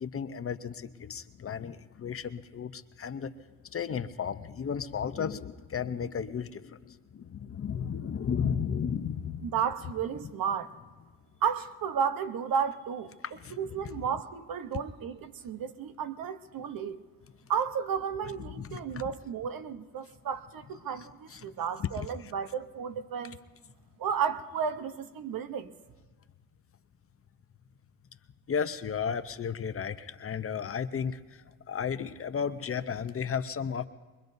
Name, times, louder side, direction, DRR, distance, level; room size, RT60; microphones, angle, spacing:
voice 1, 0.0-3.3 3.7-9.5 13.2-13.6 18.5-18.8 21.3-21.4 21.8-21.9 28.5-33.8, left 7 dB, 35° left, 0.7 m, -34 dB
voice 2, 9.4-10.7 11.4-13.1 13.6-17.0 17.5-23.4 24.0-25.7, right 7 dB, 65° right, 0.9 m, -33 dB
23.0 x 23.0 x 2.7 m
cardioid pair, 90°, 37 cm